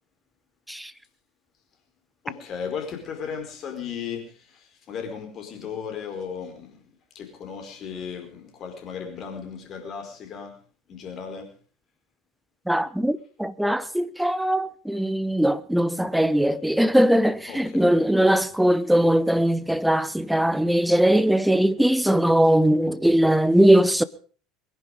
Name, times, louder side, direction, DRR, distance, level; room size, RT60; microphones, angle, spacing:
voice 1, 2.2-6.8 7.1-10.6 10.9-11.5 17.5-17.9, left 6 dB, 40° left, 4.9 m, -36 dB
voice 2, 12.7-24.0, right 1 dB, 5° right, 1.1 m, -20 dB
22.0 x 11.0 x 5.3 m
figure-of-eight pair, 70°, 0 cm